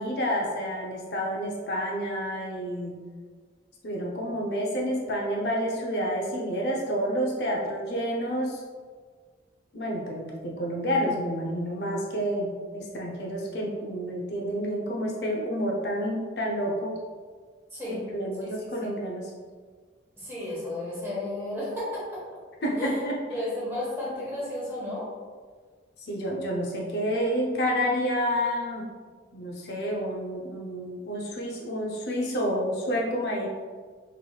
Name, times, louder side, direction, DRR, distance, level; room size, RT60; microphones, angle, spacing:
voice 1, 0.0-3.0 3.8-8.6 9.7-17.0 18.1-19.3 22.6-23.2 26.0-28.9 29.3-33.5, equal, 60° left, -2 dB, 0.5 m, -29 dB
voice 2, 17.7-18.0 18.4-18.5 20.2-22.0 22.8-23.0 23.3-25.1, left 1 dB, 10° right, -7 dB, 1.2 m, -33 dB
4.4 x 3.0 x 2.3 m, 1.5 s
head